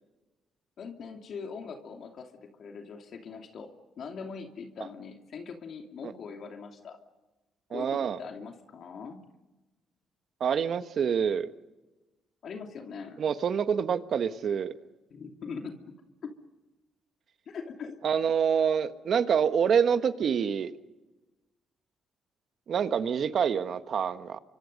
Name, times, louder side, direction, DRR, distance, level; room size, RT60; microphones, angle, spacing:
voice 1, 0.8-7.0 7.7-9.2 12.4-13.2 15.1-16.0 16.2-16.3 17.5-17.9, left 5 dB, 60° left, 3 dB, 2.7 m, -41 dB
voice 2, 7.7-8.2 10.4-11.5 13.2-14.7 18.0-20.7 22.7-24.4, right 7 dB, 60° right, 10 dB, 1.3 m, -26 dB
30.0 x 25.0 x 5.4 m, 1.1 s
cardioid pair, 90°, 0 cm